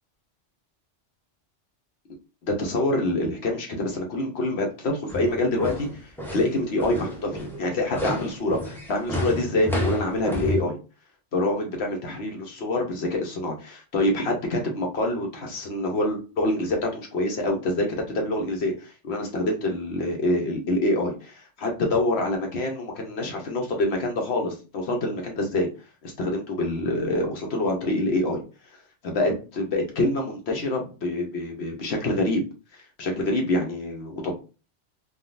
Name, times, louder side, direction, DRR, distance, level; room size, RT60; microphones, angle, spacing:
voice 1, 2.4-5.9 6.3-10.8 11.3-17.9 18.1-25.7 26.0-28.4 29.0-32.4 33.0-34.4, left 1 dB, 60° left, 2 dB, 1.0 m, -26 dB
sound 1, 5.1-10.6, left 1 dB, 5° left, 0.4 m, -30 dB
3.5 x 2.3 x 2.4 m, 0.34 s
omnidirectional pair, 1.3 m